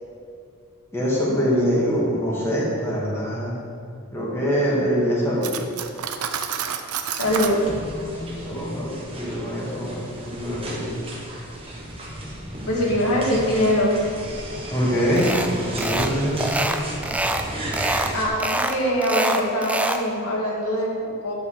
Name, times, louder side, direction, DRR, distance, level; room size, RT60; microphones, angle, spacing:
voice 1, 0.9-3.5 4.1-5.5 8.2-10.9 14.7-15.3 15.7-16.5, equal, 10° left, -7 dB, 2.2 m, -24 dB
Cutlery silverware, 5.4-7.6, right 8 dB, 75° right, 0.6 m, -29 dB
voice 2, 7.1-7.6 12.7-13.9 18.1-21.3, equal, 80° left, -3 dB, 2.1 m, -23 dB
sound 1, 7.2-18.3, right 1 dB, 25° right, 1.4 m, -34 dB
sound 2, 15.2-15.5 15.8-16.1 16.4-17.5 17.7-18.1 18.4-20.0, right 2 dB, 5° right, 0.4 m, -25 dB
11.0 x 5.5 x 6.5 m, 2.4 s
head